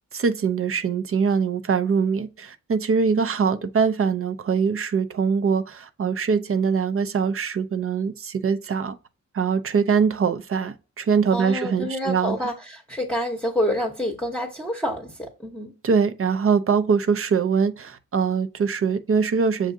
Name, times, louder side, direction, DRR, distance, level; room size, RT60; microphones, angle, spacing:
voice 1, 0.1-9.0 9.3-12.4 15.8-19.7, right 6 dB, 45° right, 0.5 m, -23 dB
voice 2, 11.3-15.7, equal, 5° left, 0.9 m, -28 dB
6.3 x 2.4 x 2.6 m
cardioid pair, 55°, 30 cm